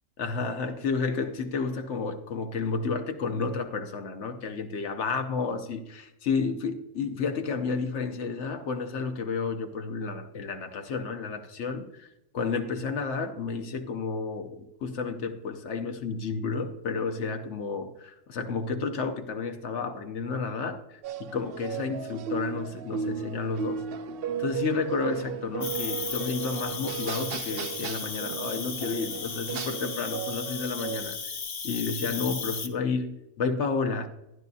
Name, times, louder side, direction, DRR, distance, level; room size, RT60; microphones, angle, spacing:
voice 1, 0.2-12.1 12.3-23.8 24.4-31.2 31.6-34.1, left 4 dB, 75° left, 1.1 m, -31 dB
sound 1, 21.0-31.0, right 7 dB, 60° right, 0.7 m, -35 dB
Cricket, 25.6-32.7, left 5 dB, 55° left, 1.0 m, -36 dB
14.0 x 10.5 x 2.7 m
omnidirectional pair, 1.2 m